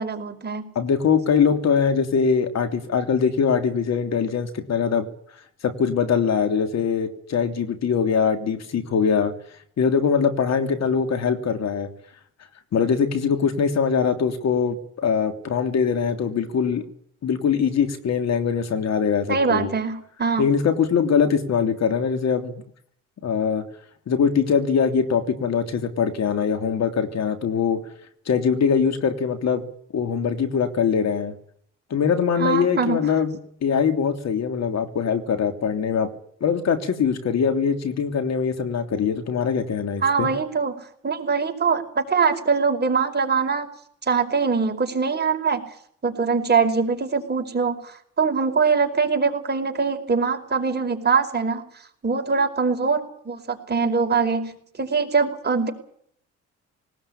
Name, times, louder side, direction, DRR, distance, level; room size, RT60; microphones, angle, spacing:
voice 1, 0.0-0.6 19.3-20.4 32.4-33.1 40.0-43.7 44.1-45.7 46.0-51.6 52.0-55.7, right 5 dB, 35° right, 4 dB, 4.9 m, -23 dB
voice 2, 0.7-5.1 5.6-9.3 9.8-11.9 12.7-16.8 17.2-19.7 20.4-22.6 23.2-23.6 24.1-27.8 28.3-29.6 29.9-31.3 31.9-36.1 36.4-40.3, left 6 dB, 60° left, 7 dB, 3.1 m, -22 dB
20.0 x 19.5 x 8.8 m, 0.62 s
cardioid pair, 90°, 30 cm